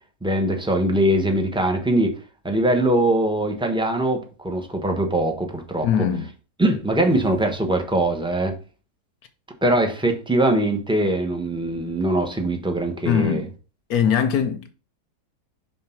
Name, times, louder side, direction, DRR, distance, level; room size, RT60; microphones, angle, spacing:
voice 1, 0.2-2.1 2.4-6.1 6.6-8.6 9.6-13.4, right 1 dB, 5° right, 0.6 m, -22 dB
voice 2, 5.8-6.3 13.0-13.5 13.9-14.7, left 8 dB, 70° left, 1.0 m, -21 dB
5.6 x 3.8 x 5.7 m
omnidirectional pair, 1.8 m